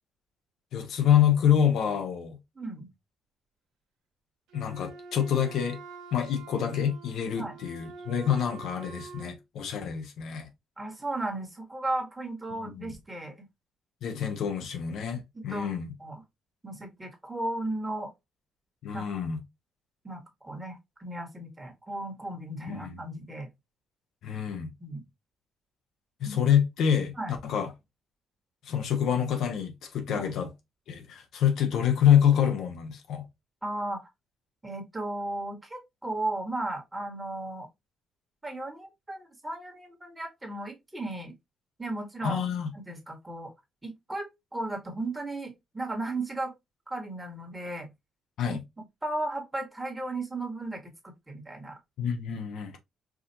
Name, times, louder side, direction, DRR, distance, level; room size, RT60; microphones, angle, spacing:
voice 1, 0.7-2.4 4.5-5.8 6.1-10.5 12.7-12.9 14.0-15.9 18.8-19.4 22.7-23.0 24.2-24.7 26.2-27.1 27.4-27.7 28.6-30.5 30.9-33.3 42.2-42.7 48.4-48.6 52.0-52.8, left 9 dB, 75° left, 1.0 m, -26 dB
voice 2, 2.5-2.9 7.4-7.6 10.8-13.5 15.3-15.7 16.0-16.2 16.6-18.1 18.9-19.0 20.0-23.5 24.8-25.0 26.2-26.4 27.2-27.3 30.1-30.3 33.6-34.1 34.6-37.7 38.4-41.3 41.8-42.4 42.7-43.5 43.8-46.5 46.9-47.9 48.5-51.8, right 2 dB, 15° right, 1.5 m, -35 dB
Wind instrument woodwind instrument, 4.5-9.4, right 5 dB, 90° right, 1.0 m, -46 dB
4.9 x 2.5 x 2.8 m
cardioid pair, 90°, 0 cm